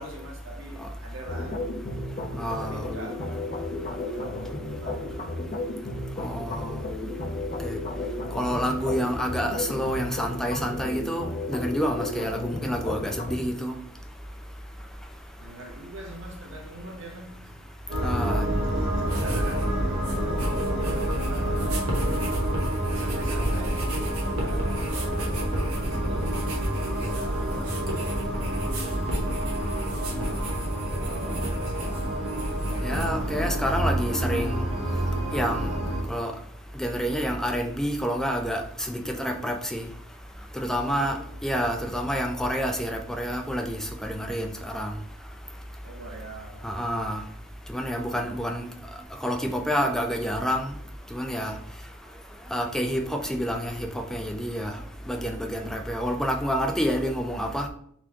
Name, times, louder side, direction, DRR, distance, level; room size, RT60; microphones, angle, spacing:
voice 1, 0.0-1.9 2.2-5.2 15.4-17.6 18.6-20.5 20.8-21.9 22.8-23.9 24.3-25.1 25.7-26.6 26.9-27.7 29.3-30.3 31.0-32.0 40.8-42.1 45.8-47.2 55.4-55.9, right 1 dB, 60° right, 0 dB, 0.8 m, -44 dB
sound 1, 1.2-13.4, left 2 dB, 35° left, 0.7 m, -33 dB
voice 2, 2.4-2.9 6.2-6.8 7.6-7.8 8.3-13.7 18.0-18.4 32.8-34.6 35.3-35.7 36.1-36.3 36.8-39.8 40.6-41.2 41.4-44.9 46.6-47.2 47.7-48.7 49.2-50.7 51.1-51.5 52.5-54.7 55.1-57.7, equal, ahead, 4 dB, 0.4 m, -28 dB
sound 2, 17.9-36.0, right 1 dB, 45° right, 1.5 m, -28 dB
sound 3, 19.0-19.7 19.9-33.0, equal, 90° right, 1.2 m, -35 dB
4.1 x 3.0 x 3.4 m, 0.66 s
head